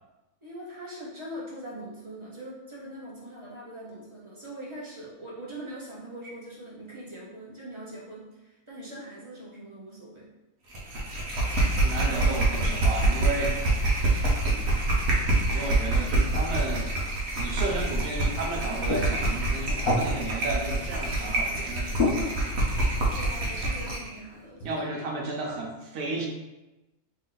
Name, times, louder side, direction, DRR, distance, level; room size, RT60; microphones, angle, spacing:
voice 1, 0.4-10.3 23.1-24.8, right 1 dB, 25° right, -6 dB, 0.7 m, -42 dB
sound 1, 10.7-24.1, right 2 dB, 50° right, 1.0 m, -26 dB
voice 2, 11.8-13.9 14.5-14.7 15.5-16.9 17.4-22.4 24.6-26.3, right 2 dB, 85° right, 0 dB, 1.3 m, -33 dB
sound 2, 18.9-21.6 22.0-23.6 24.6-24.7, left 2 dB, 75° left, 1.3 m, -31 dB
3.3 x 3.0 x 3.9 m, 1.0 s
omnidirectional pair, 1.6 m